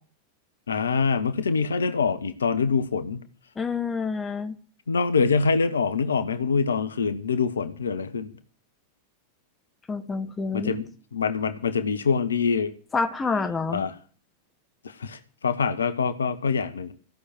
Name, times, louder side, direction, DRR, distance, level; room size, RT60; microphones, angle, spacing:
voice 1, 0.7-3.2 4.9-8.3 10.5-10.9 11.1-12.7 13.7-13.9 14.8-16.9, left 5 dB, 70° left, 13 dB, 1.0 m, -25 dB
voice 2, 3.6-4.5 9.9-10.8 12.9-13.8, left 4 dB, 15° left, 9 dB, 1.5 m, -28 dB
15.5 x 6.5 x 9.3 m, 0.41 s
figure-of-eight pair, 90°, 0 cm